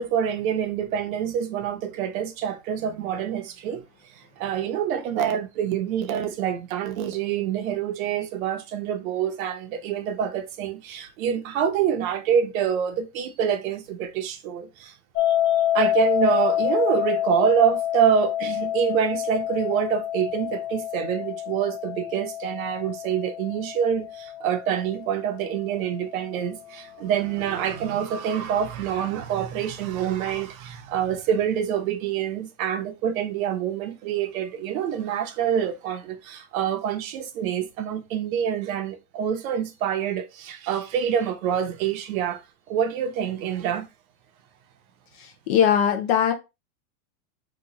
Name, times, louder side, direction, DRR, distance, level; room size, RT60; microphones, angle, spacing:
voice 1, 0.0-3.8 4.1-42.4 42.7-43.9, right 8 dB, 55° right, 0.8 m, -26 dB
sound 1, 15.2-26.1, left 12 dB, 85° left, 0.6 m, -27 dB
voice 2, 45.2-46.3, left 8 dB, 45° left, 0.4 m, -21 dB
3.0 x 2.3 x 3.8 m
supercardioid pair, 160°, 49 cm